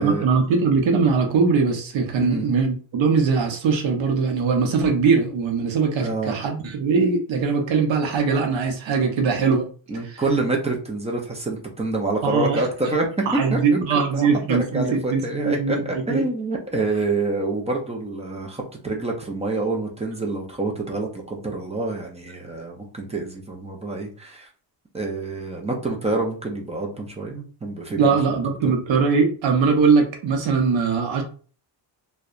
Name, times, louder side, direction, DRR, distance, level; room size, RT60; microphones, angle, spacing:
voice 1, 0.0-9.7 10.0-10.2 12.2-12.6 13.3-16.2 28.0-31.2, right 5 dB, 85° right, 3 dB, 0.7 m, -21 dB
voice 2, 6.0-6.4 9.9-13.1 13.5-13.8 14.1-24.5 24.9-28.0 28.6-28.8, right 2 dB, 15° right, 0 dB, 0.4 m, -27 dB
2.7 x 2.2 x 2.4 m, 0.41 s
cardioid pair, 140°, 45 cm